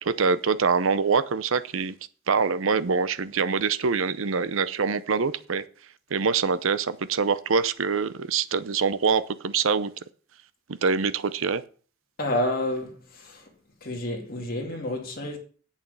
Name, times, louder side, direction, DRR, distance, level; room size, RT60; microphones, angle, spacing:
voice 1, 0.0-2.0 2.3-5.6 6.1-9.9 10.7-11.6, right 5 dB, 70° right, 0.7 m, -24 dB
voice 2, 12.2-13.4 13.8-15.4, left 1 dB, 45° left, 2.6 m, -29 dB
8.3 x 7.1 x 6.6 m
head